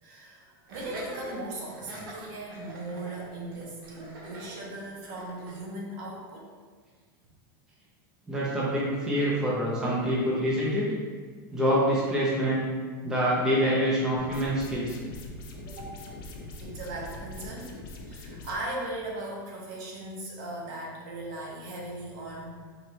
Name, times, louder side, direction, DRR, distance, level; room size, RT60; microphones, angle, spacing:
voice 1, 0.0-6.5 15.7-15.9 16.6-17.8 18.0-22.5, right 1 dB, 50° right, -3 dB, 1.0 m, -38 dB
Laughter, 0.7-5.6, right 1 dB, 75° right, 1.0 m, -44 dB
voice 2, 8.3-10.9 11.5-12.7 13.0-15.0, equal, 5° right, -7 dB, 0.6 m, -26 dB
sound 1, 14.2-18.6, left 1 dB, 65° left, 0.6 m, -42 dB
4.2 x 2.9 x 3.1 m, 1.5 s
supercardioid pair, 160°, 12 cm